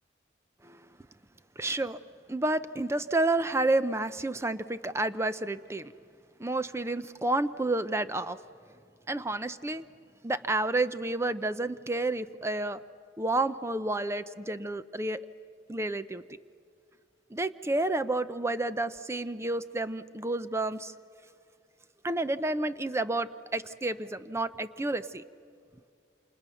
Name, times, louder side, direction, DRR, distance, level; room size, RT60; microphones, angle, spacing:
voice 1, 1.6-2.0 2.3-5.9 6.4-8.4 9.1-9.8 10.2-12.8 13.2-15.2 15.7-16.2 17.3-20.9 22.0-25.2, right 2 dB, 15° right, 12 dB, 0.6 m, -30 dB
30.0 x 27.0 x 7.0 m, 2.4 s
head